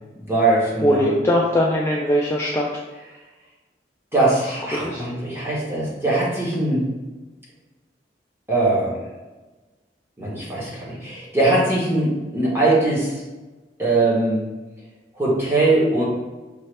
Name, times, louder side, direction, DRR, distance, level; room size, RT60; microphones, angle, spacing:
voice 1, 0.2-1.1 4.1-6.9 8.5-9.1 10.2-13.2 13.8-14.4 15.1-16.0, right 2 dB, 15° right, -6 dB, 1.3 m, -21 dB
voice 2, 0.8-2.7 4.7-5.0, equal, 15° left, -3 dB, 0.3 m, -20 dB
5.5 x 2.7 x 3.3 m, 1.2 s
head